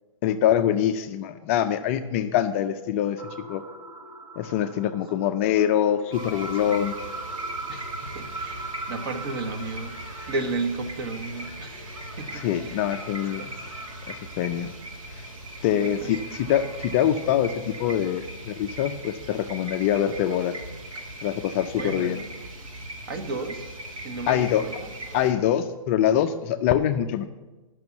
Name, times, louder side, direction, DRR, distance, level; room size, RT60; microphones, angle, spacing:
voice 1, 0.2-3.2 3.5-3.6 4.4-7.0 12.4-13.5 14.1-14.7 15.1-15.3 15.6-20.5 21.2-22.2 24.3-24.6 25.1-27.3, left 10 dB, 25° left, 7 dB, 0.4 m, -24 dB
sound 1, 3.2-17.9, right 2 dB, 20° right, 1.0 m, -41 dB
sound 2, 6.1-25.3, right 1 dB, 75° right, 2.2 m, -39 dB
voice 2, 7.7-12.9 13.4-13.6 15.7-16.2 17.0-17.1 21.8-22.7 23.1-23.7 24.0-25.2, right 3 dB, 45° right, 9 dB, 1.1 m, -34 dB
10.5 x 6.1 x 7.1 m, 1.2 s
hypercardioid pair, 150°, 17 cm